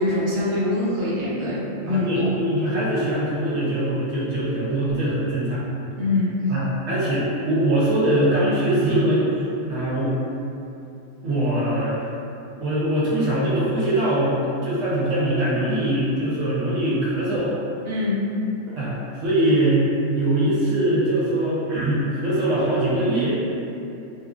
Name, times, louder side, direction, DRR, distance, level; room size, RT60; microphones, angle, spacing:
voice 1, 0.0-2.3 6.0-6.3 17.9-18.2 18.7-18.8, left 2 dB, 55° right, -10 dB, 0.9 m, -24 dB
voice 2, 1.9-5.6 6.5-10.1 11.2-11.9 12.6-14.3 14.6-17.5 18.8-19.9 20.1-23.3, right 1 dB, 85° right, -8 dB, 1.0 m, -22 dB
2.6 x 2.3 x 2.3 m, 2.7 s
omnidirectional pair, 1.3 m